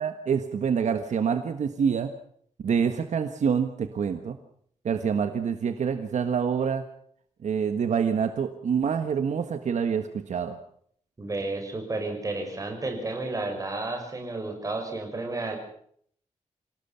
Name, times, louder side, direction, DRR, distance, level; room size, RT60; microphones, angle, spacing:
voice 1, 0.0-2.1 2.6-4.4 4.8-6.8 7.4-10.6, right 7 dB, 70° right, 8 dB, 1.5 m, -26 dB
voice 2, 11.2-15.6, right 2 dB, 25° right, 3 dB, 6.2 m, -32 dB
27.5 x 18.0 x 5.8 m, 0.63 s
wide cardioid pair, 165°, 13 cm